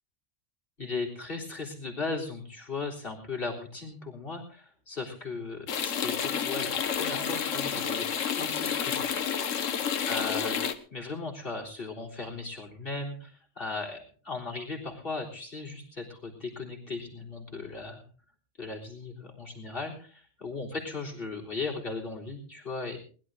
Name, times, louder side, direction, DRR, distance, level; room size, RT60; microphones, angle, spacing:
voice 1, 0.8-8.1 8.4-9.1 10.1-10.6 10.9-18.0 18.6-23.0, left 3 dB, 45° left, -1 dB, 4.0 m, -37 dB
sound 1, 5.7-10.7, left 7 dB, 90° left, 1.4 m, -30 dB
21.0 x 11.5 x 3.8 m, 0.40 s
omnidirectional pair, 1.3 m